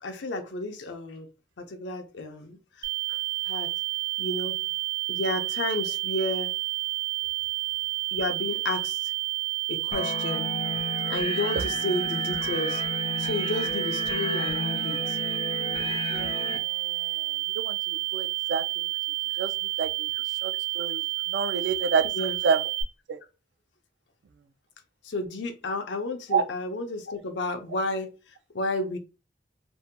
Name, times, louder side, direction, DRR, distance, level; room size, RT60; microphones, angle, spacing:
voice 1, 0.0-1.3 1.6-2.6 3.5-3.7 4.2-4.6 5.1-6.5 8.1-9.1 9.7-10.5 11.1-12.8 13.2-15.2 22.1-22.4 25.0-28.1 28.5-29.0, left 2 dB, 85° left, 0.5 m, -31 dB
sound 1, 2.8-22.8, right 20 dB, 25° right, 0.5 m, -30 dB
sound 2, 9.9-16.6, left 4 dB, 30° left, 0.3 m, -33 dB
voice 2, 16.1-16.9 17.6-18.6 19.4-19.5 19.8-19.9 20.4-21.0 21.3-22.0 22.4-22.6 23.1-23.2 26.3-26.4, right 5 dB, 80° right, 0.3 m, -27 dB
2.6 x 2.2 x 2.6 m
head